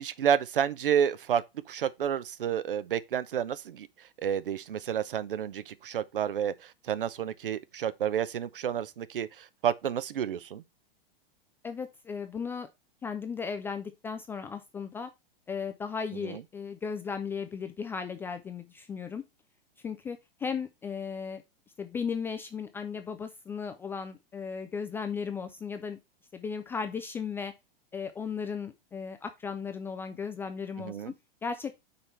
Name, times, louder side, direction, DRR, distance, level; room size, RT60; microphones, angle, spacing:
voice 1, 0.0-3.9 4.2-10.6 16.2-16.4 30.8-31.1, right 9 dB, 65° right, 0.7 m, -30 dB
voice 2, 11.6-12.7 13.0-15.1 15.5-19.2 19.8-21.4 21.8-26.0 26.3-27.5 27.9-31.1 31.4-31.7, left 6 dB, 10° left, 0.3 m, -36 dB
5.6 x 4.4 x 5.4 m
figure-of-eight pair, 100°, 29 cm